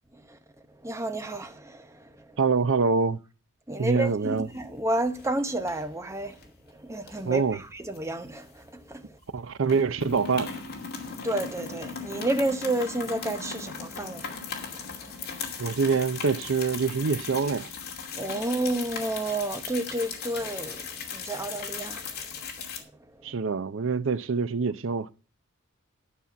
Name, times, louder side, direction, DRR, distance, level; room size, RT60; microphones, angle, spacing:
voice 1, 0.8-2.4 3.7-6.4 6.7-9.1 11.2-15.2 18.1-22.4, right 1 dB, 15° right, 0.8 m, -31 dB
voice 2, 2.4-3.2 3.8-4.5 7.2-7.6 9.3-10.5 15.6-17.7 23.2-25.1, right 5 dB, 60° right, 0.6 m, -25 dB
sound 1, 4.1-4.8 5.1-5.3 5.7-6.5 7.0-9.0 9.2-9.4 9.6-22.8, left 5 dB, 45° left, 2.5 m, -38 dB
12.0 x 5.6 x 7.2 m
head